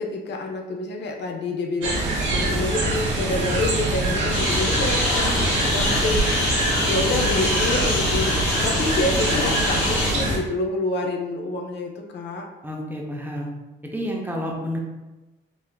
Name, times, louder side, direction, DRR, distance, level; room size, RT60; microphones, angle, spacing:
voice 1, 0.0-6.4 6.9-8.4 8.6-12.5, left 2 dB, 60° left, 2 dB, 0.5 m, -27 dB
sound 1, 1.8-10.4, right 1 dB, 70° right, 0.9 m, -24 dB
Engine, 4.3-10.1, left 1 dB, 90° left, 1.1 m, -25 dB
voice 2, 12.6-13.5 13.8-14.8, equal, 10° right, -1 dB, 0.6 m, -29 dB
4.0 x 2.5 x 2.2 m, 1.1 s
cardioid pair, 90°, 20 cm